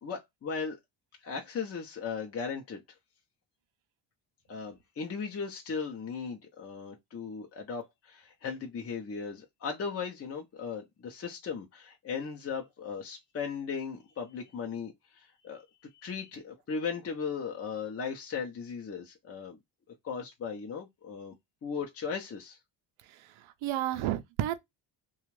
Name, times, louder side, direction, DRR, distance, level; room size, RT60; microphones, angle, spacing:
voice 1, 0.0-0.8 1.2-2.8 4.5-15.7 15.9-19.6 19.9-21.3 21.6-22.6, left 5 dB, 30° left, 0.6 m, -37 dB
voice 2, 23.1-24.6, right 13 dB, 75° right, 0.6 m, -32 dB
2.5 x 2.3 x 3.1 m
cardioid pair, 95°, 47 cm